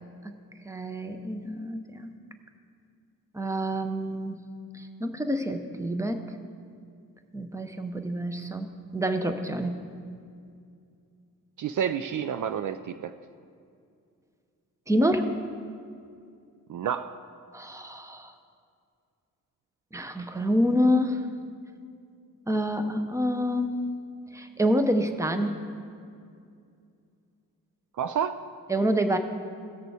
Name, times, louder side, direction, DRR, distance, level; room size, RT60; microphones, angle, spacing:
voice 1, 0.6-2.1 3.3-4.4 4.7-6.2 7.3-9.8 14.9-15.3 17.5-18.3 19.9-21.2 22.5-23.9 24.3-25.7 28.7-29.2, equal, 10° right, 7 dB, 0.8 m, -27 dB
voice 2, 11.6-13.1 16.7-17.2 28.0-28.4, right 8 dB, 60° right, 10 dB, 0.5 m, -29 dB
17.0 x 6.7 x 4.9 m, 2.4 s
cardioid pair, 85°, 35 cm